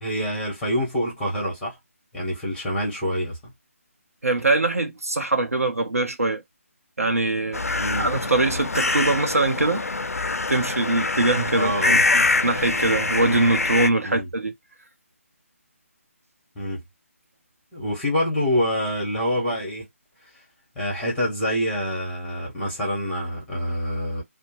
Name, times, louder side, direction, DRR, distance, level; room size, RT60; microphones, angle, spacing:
voice 1, 0.0-1.7 2.1-3.4 7.7-8.1 11.6-12.0 14.0-14.3 16.5-16.8 17.7-19.8 20.7-24.2, equal, 5° left, 1.3 m, -26 dB
voice 2, 4.2-6.4 7.0-7.6 8.0-9.9 10.5-14.5, right 2 dB, 75° right, 0.8 m, -23 dB
sound 1, 7.5-13.9, left 3 dB, 80° left, 0.3 m, -24 dB
2.7 x 2.1 x 3.0 m
figure-of-eight pair, 150°, 8 cm